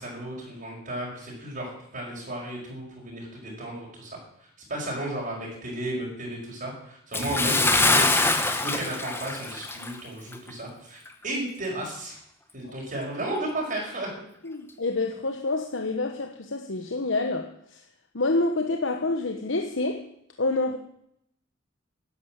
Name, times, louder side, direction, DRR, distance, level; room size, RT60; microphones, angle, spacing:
voice 1, 0.0-12.2 12.5-14.1, right 1 dB, 45° right, -4 dB, 5.2 m, -34 dB
Bathtub (filling or washing) / Splash splatter, 7.1-10.0 10.3-10.5 11.1-11.2, left 2 dB, 10° left, 1.2 m, -24 dB
voice 2, 14.4-17.8 18.1-20.1 20.4-20.8, left 2 dB, 70° left, 5 dB, 1.1 m, -27 dB
12.0 x 11.0 x 7.5 m, 0.74 s
head